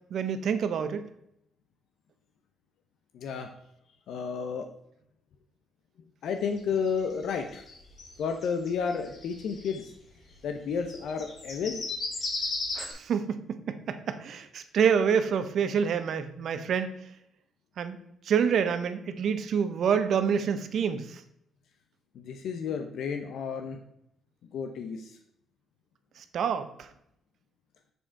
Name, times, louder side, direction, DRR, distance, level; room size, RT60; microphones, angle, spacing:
voice 1, 0.1-1.0 12.7-16.9 17.8-18.0 18.2-21.2 26.2-26.9, right 7 dB, 65° right, 10 dB, 0.7 m, -27 dB
voice 2, 3.1-3.5 4.1-4.7 6.2-7.6 8.2-9.9 10.4-11.8 22.1-23.8 24.5-25.2, left 6 dB, 75° left, 5 dB, 0.6 m, -32 dB
sound 1, 6.6-9.8 10.7-12.9, left 3 dB, 55° left, 2.0 m, -35 dB
6.9 x 3.6 x 4.4 m, 0.75 s
cardioid pair, 90°, 0 cm